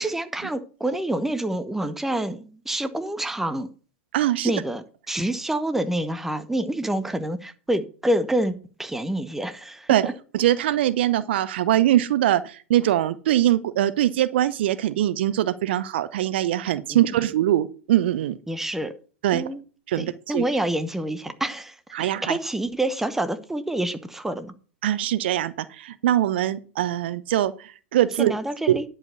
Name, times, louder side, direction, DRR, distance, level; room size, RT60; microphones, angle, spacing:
voice 1, 0.0-3.7 4.4-9.9 16.9-17.1 18.5-18.9 19.3-19.6 20.0-24.5 28.2-28.8, right 1 dB, 5° right, 1.0 m, -27 dB
voice 2, 4.1-4.5 9.9-10.1 10.3-18.4 19.2-19.4 19.9-20.4 21.9-22.4 24.8-28.3 28.7-28.8, right 13 dB, 60° right, 0.7 m, -22 dB
10.5 x 5.0 x 6.7 m
figure-of-eight pair, 95°, 7 cm